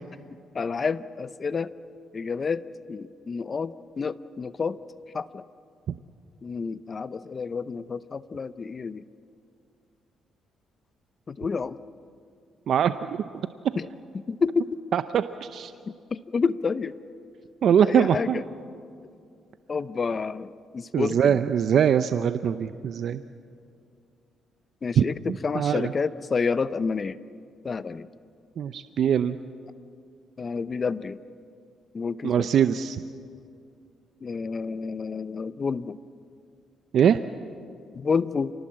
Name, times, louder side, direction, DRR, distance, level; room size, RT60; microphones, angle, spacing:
voice 1, 0.5-1.7 2.1-4.8 5.1-5.4 6.4-9.0 11.3-11.8 13.8-13.9 14.3-14.8 16.1-17.0 17.8-18.4 19.7-21.4 24.8-27.2 27.6-28.1 30.4-31.2 31.9-32.5 34.2-36.0 37.9-38.5, left 5 dB, 40° left, 15 dB, 0.7 m, -29 dB
voice 2, 12.7-13.2 14.9-15.7 17.6-18.4 20.9-23.2 25.0-25.9 28.6-29.4 32.2-33.0 36.9-37.2, right 8 dB, 65° right, 11 dB, 0.6 m, -22 dB
28.0 x 19.5 x 7.5 m, 2.4 s
cardioid pair, 90°, 0 cm